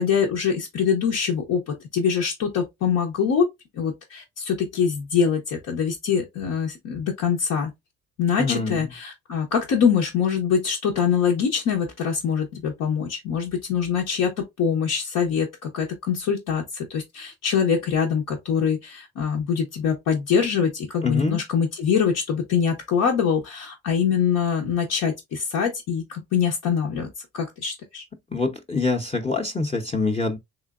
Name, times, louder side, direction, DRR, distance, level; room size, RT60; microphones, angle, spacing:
voice 1, 0.0-3.5 3.7-7.7 8.2-27.1 27.3-28.0, left 7 dB, 90° left, 1.0 m, -24 dB
voice 2, 8.4-8.8 21.0-21.4 28.3-30.4, left 3 dB, 20° left, 0.6 m, -25 dB
3.5 x 3.2 x 2.4 m
cardioid pair, 90°, 30 cm